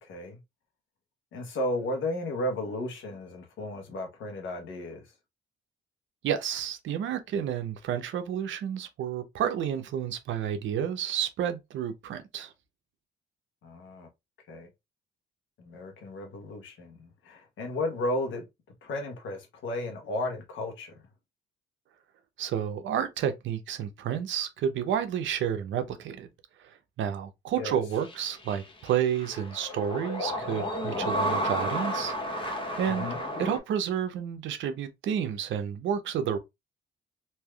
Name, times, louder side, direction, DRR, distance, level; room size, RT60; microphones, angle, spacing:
voice 1, 0.0-0.4 1.3-5.0 13.6-14.1 14.5-14.7 15.6-18.4 18.8-20.9 27.6-27.8 32.8-33.2, left 1 dB, 75° left, 1.1 m, -34 dB
voice 2, 6.2-12.5 22.4-26.3 26.6-33.1 33.4-36.4, right 9 dB, 70° right, 0.6 m, -30 dB
sound 1, 27.9-33.6, equal, 25° left, 0.8 m, -32 dB
3.3 x 2.7 x 2.3 m
cardioid pair, 90°, 20 cm